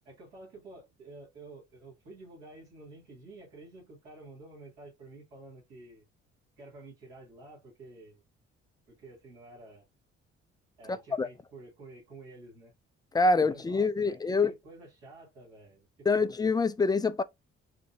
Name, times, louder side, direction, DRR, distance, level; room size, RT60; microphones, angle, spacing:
voice 1, 0.0-6.0 6.6-8.2 8.9-9.9 10.8-12.7 13.3-16.3, right 2 dB, 80° right, 1.9 m, -50 dB
voice 2, 10.9-11.3 13.1-14.5 16.1-17.2, left 3 dB, 15° left, 0.3 m, -26 dB
4.9 x 2.1 x 2.6 m
figure-of-eight pair, 40°, 33 cm